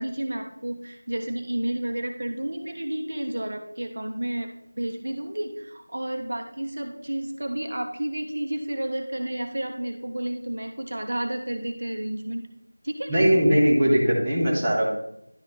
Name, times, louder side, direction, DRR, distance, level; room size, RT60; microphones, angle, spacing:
voice 1, 0.0-4.5 4.8-12.4 12.8-13.1, right 1 dB, 50° right, 4 dB, 1.2 m, -31 dB
voice 2, 13.1-14.9, equal, 5° right, -15 dB, 0.9 m, -20 dB
11.5 x 5.1 x 4.1 m, 0.77 s
figure-of-eight pair, 180°, 0 cm